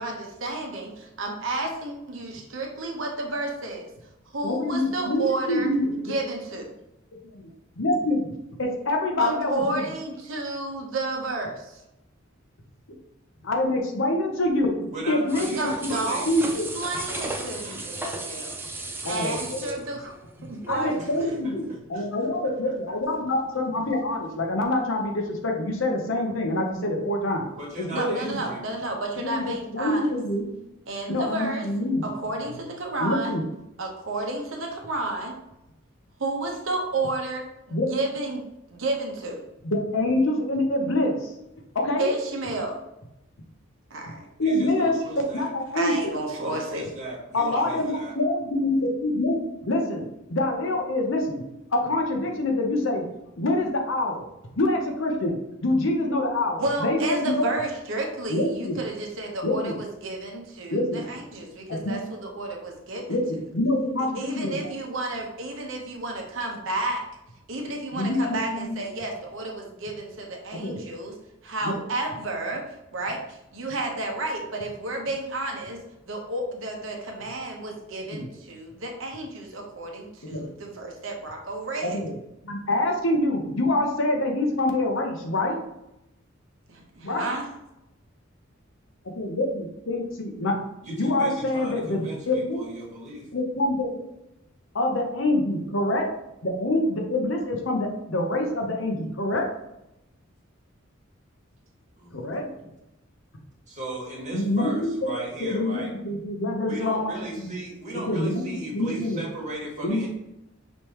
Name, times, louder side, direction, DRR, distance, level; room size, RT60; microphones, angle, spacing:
voice 1, 0.0-3.9 4.3-5.7 6.1-6.7 9.2-11.5 15.5-16.3 16.7-18.5 19.1-20.2 20.4-20.9 21.2-21.4 27.9-30.1 30.9-31.6 32.0-33.3 33.8-35.4 36.2-38.4 38.7-39.4 42.0-42.8 43.9-44.3 45.7-46.9 56.6-63.2 64.2-67.0 67.5-71.1 71.4-72.6 72.9-82.0 86.7-87.4, right 2 dB, 70° right, 1 dB, 0.9 m, -31 dB
voice 2, 4.4-6.1 7.2-7.5 7.8-8.3 8.6-9.8 13.4-15.5 15.8-16.0 16.2-16.7 19.0-19.8 20.7-27.5 27.8-28.4 29.2-29.5 29.7-30.5 31.1-32.0 33.0-33.4 37.7-37.9 39.6-41.3 41.7-42.1 44.4-45.0 45.3-46.1 47.3-49.4 49.6-51.4 51.7-53.0 53.4-54.3 54.6-55.4 55.6-57.5 58.3-58.8 59.4-59.8 60.7-61.0 61.7-62.0 63.1-64.7 67.9-68.8 70.6-70.8 71.6-71.8 78.1-78.3 80.3-80.5 81.9-82.1 82.4-85.6 87.0-87.3 89.2-90.6 90.9-92.7 93.3-94.1 94.7-96.1 96.4-99.5 102.1-102.5 104.3-107.5 108.1-108.4 108.7-109.2 109.8-110.1, left 1 dB, 70° left, 2 dB, 0.8 m, -26 dB
voice 3, 14.9-16.6 17.3-17.9 21.0-22.0 22.6-22.7 27.5-28.7 44.4-45.5 46.3-48.1 90.8-93.3 102.0-102.7 103.7-105.9 106.6-110.1, right 1 dB, 35° right, -4 dB, 1.6 m, -37 dB
sound 1, 15.3-21.3 21.6-21.7, right 2 dB, 10° right, 0.5 m, -36 dB
5.2 x 3.2 x 2.9 m, 0.88 s
head